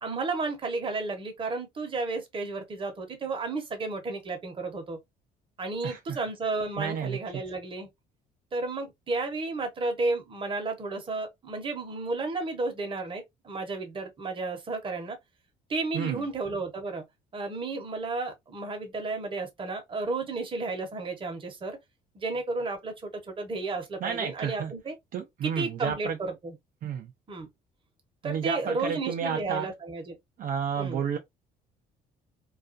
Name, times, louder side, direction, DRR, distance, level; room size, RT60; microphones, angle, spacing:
voice 1, 0.0-5.0 5.6-7.9 8.5-15.2 15.7-17.0 17.3-21.8 22.1-24.9 25.4-26.5 27.3-27.5 28.2-30.1 30.8-31.0, right 3 dB, 30° right, 0.8 m, -32 dB
voice 2, 5.8-6.2 6.8-7.4 15.9-16.2 24.0-24.7 25.1-26.2 26.8-27.1 28.2-29.7 30.4-31.2, right 7 dB, 55° right, 0.5 m, -31 dB
2.3 x 2.2 x 2.4 m
cardioid pair, 110°, 17 cm